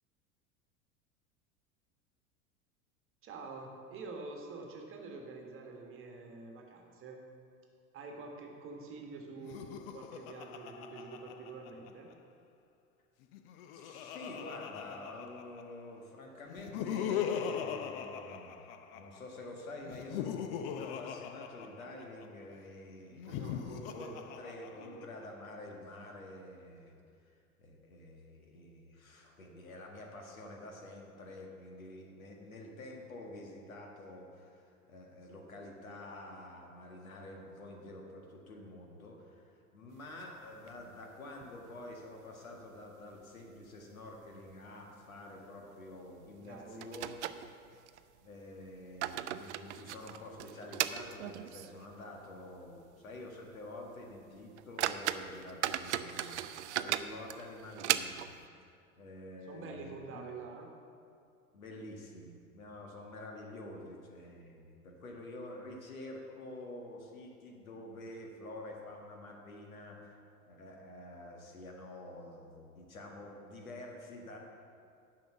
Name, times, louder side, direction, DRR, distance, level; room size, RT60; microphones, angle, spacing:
voice 1, 3.2-7.2 7.9-12.2 23.2-24.3 24.8-25.0 46.4-47.0 57.0-57.1 59.5-60.7, right 3 dB, 30° right, 2 dB, 1.5 m, -47 dB
Laughter, 9.4-12.1 13.2-15.8 16.5-19.2 19.8-22.3 23.1-25.2, left 8 dB, 40° left, 0.6 m, -40 dB
voice 2, 13.7-18.7 18.9-23.4 23.9-24.1 24.4-26.9 27.3-27.4 27.6-47.4 48.2-58.3 58.6-60.2 61.5-70.2 70.5-74.4, left 1 dB, 70° left, 1 dB, 1.7 m, -48 dB
sound 1, 40.1-41.0 41.4-41.5 41.8-41.9 42.5-43.0 43.3-43.4 44.1-44.2 44.5-44.7 46.1-46.2 46.8-48.0 48.7-51.9 52.2-52.3 52.8-53.0 53.4-53.6 54.1-54.2 54.6-58.5, right 12 dB, 55° right, 0.5 m, -37 dB
10.5 x 5.7 x 6.8 m, 2.4 s
figure-of-eight pair, 80°, 43 cm